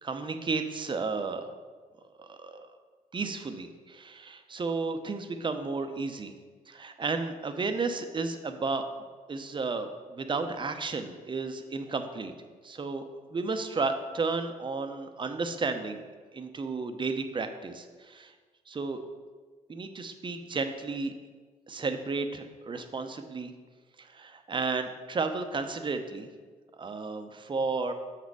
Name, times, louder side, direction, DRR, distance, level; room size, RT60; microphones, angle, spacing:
voice 1, 0.0-1.5 2.2-2.7 3.1-6.3 6.7-8.8 9.3-12.3 12.6-13.0 13.3-16.1 16.3-18.3 18.7-19.0 19.7-21.1 21.7-23.5 24.0-26.3 26.8-27.9, right 4 dB, 35° right, 7 dB, 0.7 m, -33 dB
6.3 x 4.2 x 4.7 m, 1.4 s
supercardioid pair, 65°, 15 cm